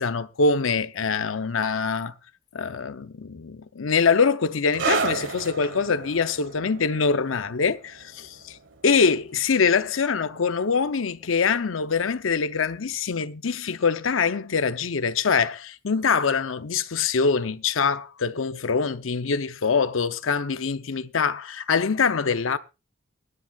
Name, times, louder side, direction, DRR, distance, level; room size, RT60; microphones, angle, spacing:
voice 1, 0.0-2.1 2.5-8.6 8.8-22.6, left 5 dB, 80° left, 0.7 m, -24 dB
sound 1, 4.7-11.7 12.0-12.2 13.0-13.1, right 4 dB, 70° right, 1.8 m, -34 dB
23.0 x 10.0 x 2.4 m
head